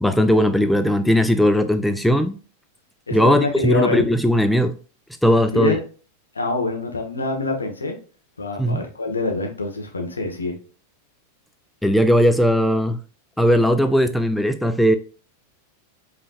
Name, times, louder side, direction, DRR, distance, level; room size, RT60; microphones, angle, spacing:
voice 1, 0.0-2.4 3.1-4.8 5.2-5.8 8.6-8.8 11.8-13.0 13.4-15.0, equal, 5° left, 0.3 m, -18 dB
voice 2, 3.1-4.0 5.5-5.8 6.3-8.0 8.4-10.5, left 3 dB, 75° left, 1.1 m, -25 dB
5.2 x 3.3 x 2.4 m
figure-of-eight pair, 90°, 0 cm